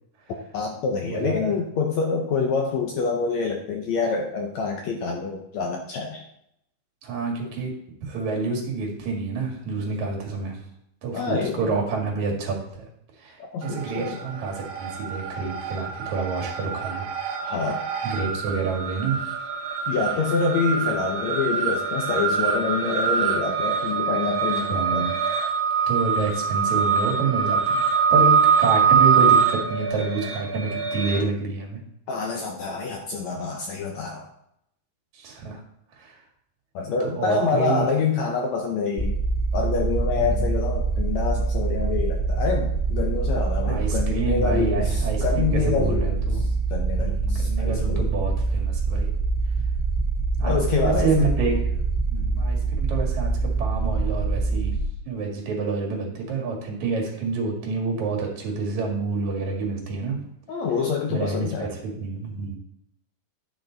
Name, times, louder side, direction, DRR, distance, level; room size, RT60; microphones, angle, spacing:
voice 1, 0.5-6.3 11.1-11.7 13.4-14.1 17.4-17.8 19.9-25.1 32.1-34.3 36.7-39.2 39.5-46.1 46.7-48.1 50.4-51.3 60.5-61.7, left 5 dB, 75° left, 2 dB, 1.7 m, -26 dB
voice 2, 1.0-1.6 7.0-7.7 8.0-10.6 11.0-12.9 13.2-17.1 18.0-19.2 24.7-25.1 25.9-27.8 28.1-31.8 35.1-35.6 36.0-36.1 37.0-37.9 40.2-40.4 43.6-46.4 47.0-49.1 50.4-51.8 52.1-54.7 55.1-60.2 61.1-62.6, right 4 dB, 55° right, 0 dB, 3.2 m, -28 dB
sound 1, 13.7-14.3 14.6-31.2, right 6 dB, 75° right, 2.6 m, -23 dB
sound 2, 39.0-54.8, right 4 dB, ahead, 1.0 m, -24 dB
10.5 x 5.9 x 3.9 m, 0.76 s
omnidirectional pair, 4.1 m